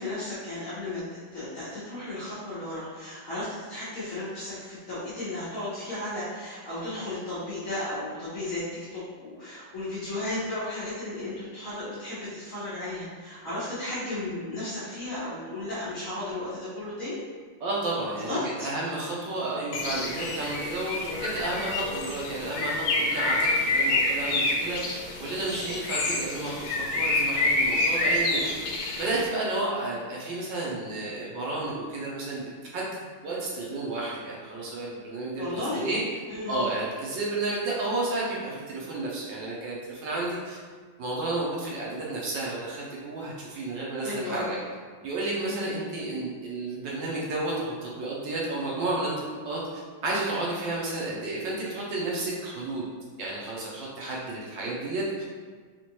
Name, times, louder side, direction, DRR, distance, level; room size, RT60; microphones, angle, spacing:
voice 1, 0.0-8.6 8.9-17.2 18.3-18.7 35.4-35.9 36.3-36.7 44.0-44.6 45.4-45.8, left 2 dB, 55° left, -10 dB, 0.9 m, -34 dB
voice 2, 17.6-28.4 29.0-36.0 36.5-40.6 41.0-44.6 45.0-49.6 50.0-52.9 53.2-55.0, right 2 dB, 70° right, -5 dB, 1.3 m, -32 dB
Bird, 19.7-29.3, left 2 dB, 80° left, 1.4 m, -27 dB
4.3 x 2.4 x 2.9 m, 1.5 s
omnidirectional pair, 2.2 m